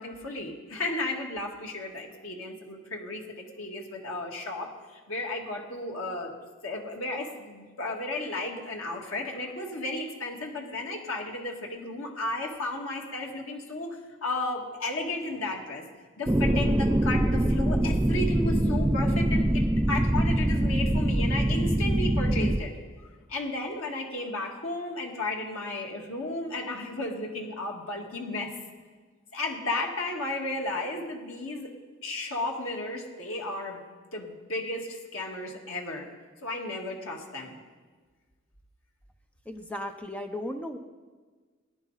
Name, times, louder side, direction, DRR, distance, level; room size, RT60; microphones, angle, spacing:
voice 1, 0.0-6.3 6.6-15.8 16.2-22.7 23.3-28.5 29.3-31.7 32.0-33.8 34.1-36.1 36.4-37.6, left 2 dB, 80° left, 0 dB, 2.1 m, -34 dB
sound 1, 16.3-22.6, right 1 dB, 10° right, 0.4 m, -24 dB
voice 2, 39.5-40.8, left 1 dB, 5° left, 5 dB, 0.8 m, -35 dB
20.0 x 10.5 x 4.1 m, 1.4 s
head